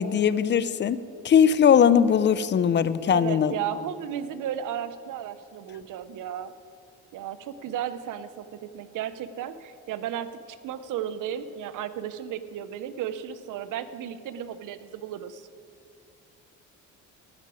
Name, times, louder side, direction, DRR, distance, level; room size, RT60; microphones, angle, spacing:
voice 1, 0.0-3.5, left 8 dB, 35° left, 16 dB, 0.5 m, -20 dB
voice 2, 3.1-6.5 7.1-15.5, right 9 dB, 65° right, 13 dB, 0.7 m, -34 dB
12.0 x 6.0 x 9.1 m, 2.4 s
cardioid pair, 85°, 33 cm